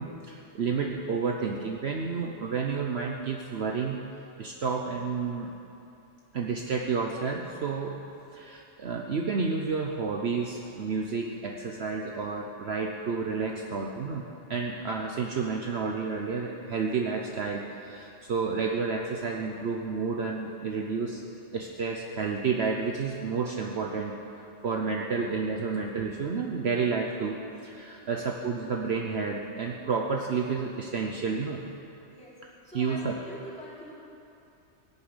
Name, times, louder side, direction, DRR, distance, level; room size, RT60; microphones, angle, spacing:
voice 1, 0.0-4.0 4.4-5.5 6.3-8.0 8.3-14.2 14.5-21.2 21.5-31.6 32.7-33.1, right 5 dB, 55° right, 1 dB, 1.1 m, -30 dB
voice 2, 32.6-33.9, equal, 5° left, -9 dB, 4.3 m, -44 dB
17.0 x 7.1 x 9.8 m, 2.7 s
omnidirectional pair, 1.3 m